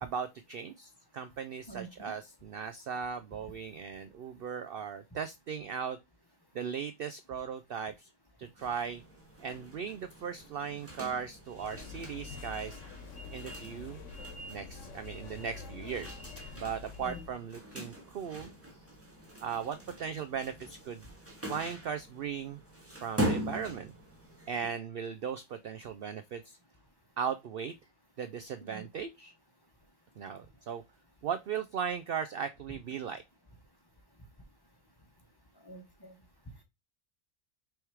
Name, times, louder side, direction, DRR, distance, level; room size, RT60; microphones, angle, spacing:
voice 1, 0.0-6.0 6.5-8.1 8.4-9.0 9.4-12.8 13.3-14.0 14.5-16.2 16.5-18.5 19.4-21.1 21.4-22.6 23.0-23.9 24.5-26.6 27.2-27.7 28.2-29.3 30.2-30.8 31.2-33.2, right 7 dB, 60° right, 0.6 m, -37 dB
voice 2, 1.7-2.1 17.0-17.2 28.6-28.8 35.6-36.2, right 2 dB, 20° left, 1.1 m, -46 dB
sound 1, 8.6-24.7, equal, 10° right, 1.3 m, -42 dB
sound 2, 11.5-17.4, left 3 dB, 65° left, 1.5 m, -46 dB
6.1 x 3.5 x 4.7 m
omnidirectional pair, 1.4 m